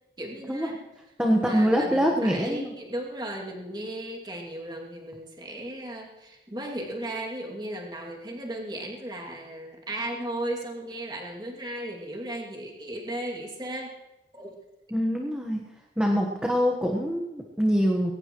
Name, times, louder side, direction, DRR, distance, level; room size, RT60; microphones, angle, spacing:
voice 1, 0.2-0.8 1.3-13.9 14.3-14.6 16.3-16.5, right 1 dB, 25° right, -1 dB, 2.5 m, -36 dB
voice 2, 1.2-2.7 14.9-15.6 16.0-18.1, equal, 5° right, 0 dB, 1.3 m, -24 dB
22.0 x 18.0 x 3.1 m, 1.0 s
head